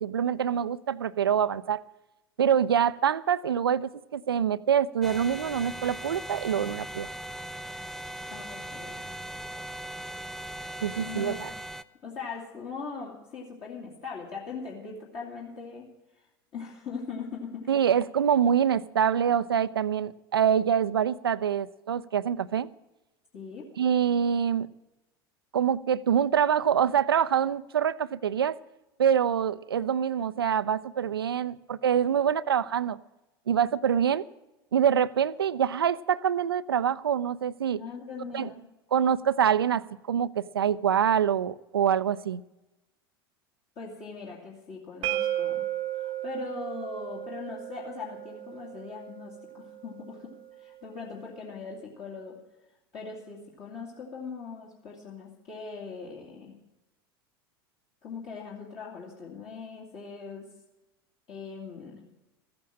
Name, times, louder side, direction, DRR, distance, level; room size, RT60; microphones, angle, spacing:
voice 1, 0.0-1.8 2.4-7.1 10.8-11.5 17.7-22.7 23.8-24.7 25.5-28.6 29.0-33.0 33.5-34.2 34.7-37.8 38.3-38.5 38.9-42.4, right 8 dB, 75° right, 17 dB, 0.4 m, -25 dB
sound 1, 5.0-11.8, right 1 dB, ahead, 0.4 m, -39 dB
voice 2, 8.3-9.0 11.0-11.5 12.0-15.9 16.5-17.8 23.3-23.7 37.7-38.6 43.8-45.7 45.9-52.4 52.9-56.5 58.0-60.5 61.3-62.1, left 5 dB, 40° left, -4 dB, 2.4 m, -40 dB
sound 2, 45.0-50.8, right 13 dB, 40° right, 0.8 m, -35 dB
14.5 x 8.7 x 7.4 m, 1.0 s
figure-of-eight pair, 80°, 13 cm